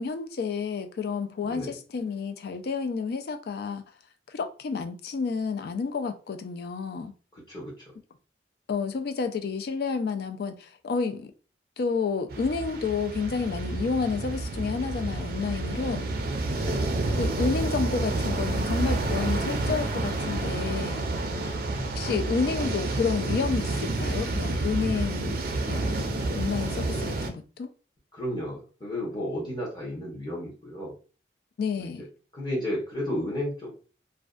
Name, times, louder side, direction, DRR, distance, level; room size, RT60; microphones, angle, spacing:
voice 1, 0.0-3.8 4.3-7.1 8.7-11.3 11.8-16.1 17.2-21.0 21.9-25.4 25.7-27.7 31.6-32.0, left 5 dB, 60° left, 0.3 m, -30 dB
voice 2, 1.4-1.7 7.3-7.9 16.5-17.2 21.3-21.6 28.1-30.9 31.8-32.1 32.3-33.7, left 1 dB, 25° left, 0.8 m, -33 dB
sound 1, 12.3-27.3, right 2 dB, 55° right, 0.4 m, -29 dB
2.5 x 2.1 x 2.3 m
head